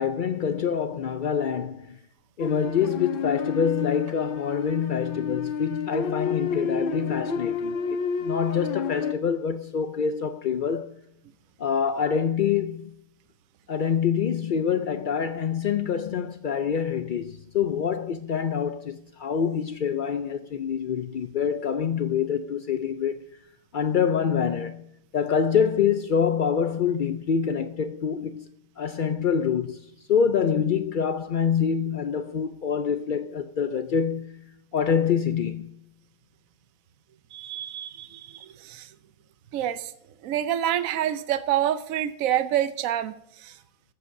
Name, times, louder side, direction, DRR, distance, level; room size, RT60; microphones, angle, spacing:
voice 1, 0.0-2.0 2.4-10.9 11.6-12.9 13.7-23.3 23.7-24.8 25.1-28.5 28.8-34.4 34.7-35.7, left 7 dB, 85° left, 0.4 m, -26 dB
sound 1, 2.4-9.1, left 6 dB, 50° left, 0.7 m, -30 dB
voice 2, 37.3-38.9 39.5-39.9 40.2-43.1 43.4-43.5, right 11 dB, 75° right, 1.1 m, -27 dB
14.5 x 12.5 x 2.6 m
omnidirectional pair, 1.5 m